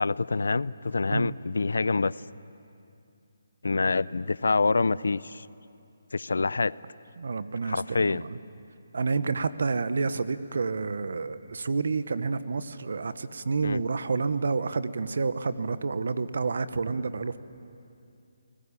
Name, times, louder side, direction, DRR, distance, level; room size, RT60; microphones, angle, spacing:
voice 1, 0.0-2.1 3.6-5.5 6.1-6.7 7.7-8.2 13.6-13.8, left 3 dB, 90° left, 20 dB, 0.5 m, -26 dB
voice 2, 7.2-8.4 8.9-17.4, right 4 dB, 65° right, 13 dB, 1.1 m, -29 dB
29.5 x 20.0 x 8.6 m, 2.6 s
hypercardioid pair, 170°, 0 cm